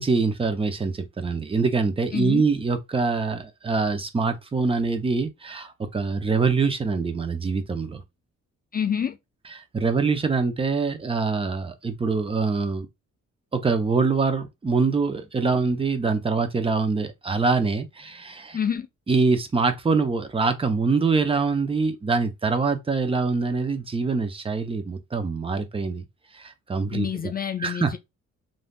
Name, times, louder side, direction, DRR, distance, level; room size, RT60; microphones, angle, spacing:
voice 1, 0.0-8.0 9.6-12.9 13.5-18.6 19.1-26.0 26.3-27.1 27.6-28.0, right 4 dB, 20° right, 0.6 m, -24 dB
voice 2, 2.1-2.5 8.7-9.2 18.5-18.9 26.9-28.0, left 8 dB, 30° left, 0.4 m, -27 dB
3.3 x 2.6 x 2.2 m
cardioid pair, 90°, 30 cm